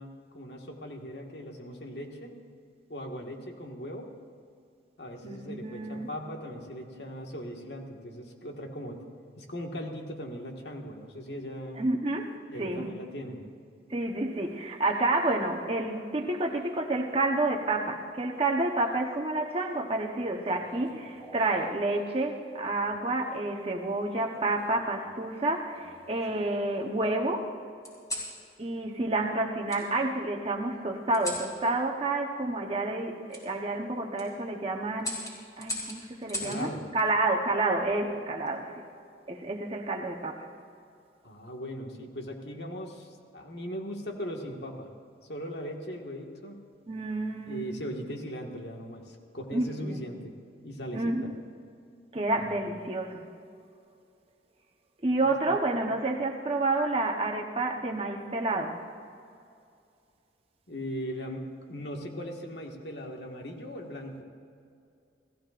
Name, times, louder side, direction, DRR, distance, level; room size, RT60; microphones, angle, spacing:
voice 1, 0.0-2.3 2.9-4.1 5.0-9.0 9.4-11.8 12.5-13.4 36.4-36.9 41.2-44.9 45.3-46.6 47.5-50.3 50.6-51.2 52.3-52.5 55.4-55.6 60.7-64.2, equal, 70° left, 1 dB, 1.7 m, -39 dB
voice 2, 5.2-6.1 11.8-12.9 13.9-27.5 28.6-35.3 35.6-38.8 39.3-40.5 46.9-47.7 49.5-50.0 50.9-51.2 52.1-53.3 55.0-58.8, right 2 dB, 30° right, 1 dB, 1.0 m, -29 dB
sound 1, 20.5-21.6 22.6-23.0 24.3-25.1 25.7-26.6 27.8-28.3 29.7-29.8 31.1-31.5 33.3-33.4 34.0-34.3 35.0-36.6 38.1-38.5, left 1 dB, 20° left, 3.6 m, -39 dB
29.0 x 15.5 x 2.5 m, 2.4 s
head